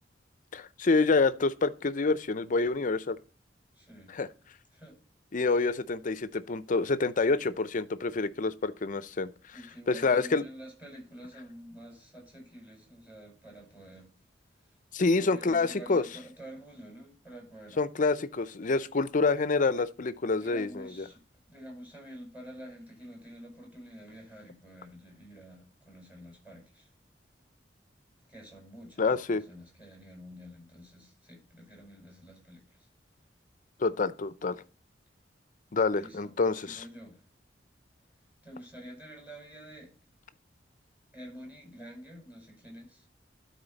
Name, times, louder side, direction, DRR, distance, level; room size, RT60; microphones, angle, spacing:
voice 1, 0.5-3.2 4.1-4.3 5.3-9.3 9.9-10.4 14.9-16.0 17.8-21.0 29.0-29.4 33.8-34.6 35.7-36.8, left 3 dB, 45° left, 0.5 m, -27 dB
voice 2, 3.7-4.2 4.7-5.0 9.5-14.1 14.5-14.8 15.1-17.8 20.4-26.9 28.3-32.9 35.9-37.2 38.4-40.0 41.1-43.1, equal, 10° right, 4.7 m, -48 dB
12.5 x 4.4 x 4.0 m
head